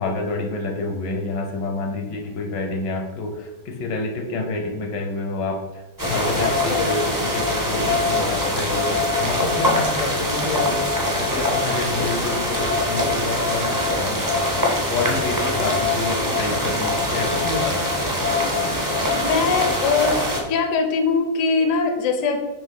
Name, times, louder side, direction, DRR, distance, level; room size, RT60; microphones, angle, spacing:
voice 1, 0.0-13.7 14.0-14.3 14.5-14.6 14.9-17.8, left 3 dB, 75° left, 3 dB, 1.5 m, -28 dB
sound 1, 6.0-20.4, left 1 dB, 15° right, 0.7 m, -23 dB
voice 2, 19.1-20.2 20.5-22.4, left 4 dB, 60° left, 4 dB, 0.9 m, -21 dB
5.3 x 3.4 x 5.3 m, 1.1 s
omnidirectional pair, 1.9 m